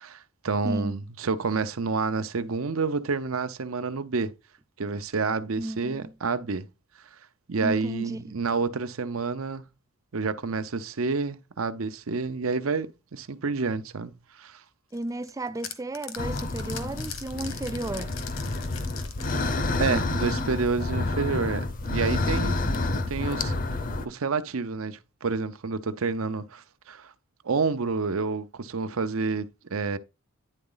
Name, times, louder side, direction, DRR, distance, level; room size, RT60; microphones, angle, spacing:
voice 1, 0.0-4.3 4.8-6.7 7.5-9.6 10.1-14.6 19.8-22.7 23.1-23.5 24.0-27.1 27.4-30.0, right 4 dB, 75° right, 0.7 m, -29 dB
voice 2, 5.6-6.1 7.6-8.3 14.9-18.2 22.4-23.1, right 1 dB, 15° right, 0.3 m, -34 dB
sound 1, 14.9-20.5, left 7 dB, 70° left, 1.2 m, -42 dB
sound 2, 16.2-24.1, left 2 dB, 40° left, 0.6 m, -29 dB
10.0 x 4.0 x 3.9 m
head